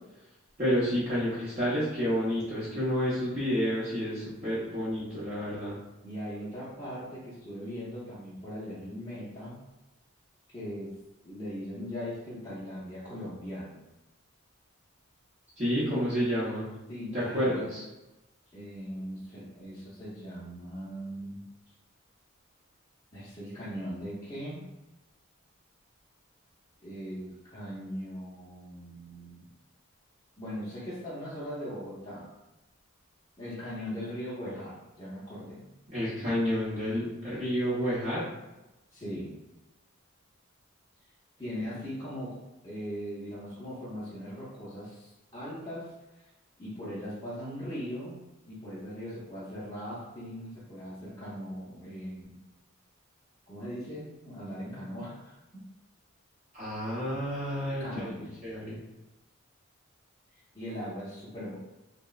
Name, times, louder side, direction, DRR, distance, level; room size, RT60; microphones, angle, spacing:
voice 1, 0.6-5.8 15.6-16.7 17.1-17.8 35.9-38.3 56.5-58.8, equal, 30° right, -11 dB, 0.7 m, -30 dB
voice 2, 6.0-9.6 10.5-10.9 11.2-13.8 16.9-17.8 18.5-21.4 23.1-24.6 26.8-29.5 30.4-32.3 33.4-35.7 38.9-39.4 41.4-42.4 42.6-46.3 46.6-52.4 53.5-55.4 57.8-58.4 60.5-61.5, equal, 15° left, -12 dB, 0.6 m, -39 dB
2.9 x 2.0 x 2.3 m, 1.0 s
head